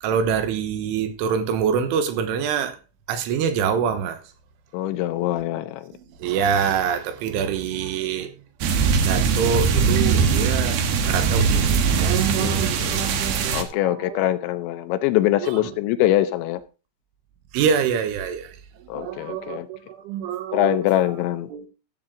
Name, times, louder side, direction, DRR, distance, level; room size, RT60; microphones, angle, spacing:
voice 1, 0.0-2.8 3.1-4.2 5.9-8.3 9.1-14.2 15.4-15.7 17.5-18.6 18.9-20.8 21.5-21.7, right 7 dB, 85° right, 3.7 m, -25 dB
voice 2, 4.7-5.9 12.4-13.1 13.5-16.6 18.9-19.7 20.5-21.5, left 14 dB, 80° left, 2.8 m, -23 dB
sound 1, 8.6-13.6, right 5 dB, 65° right, 2.6 m, -21 dB
15.0 x 7.8 x 3.7 m
omnidirectional pair, 5.5 m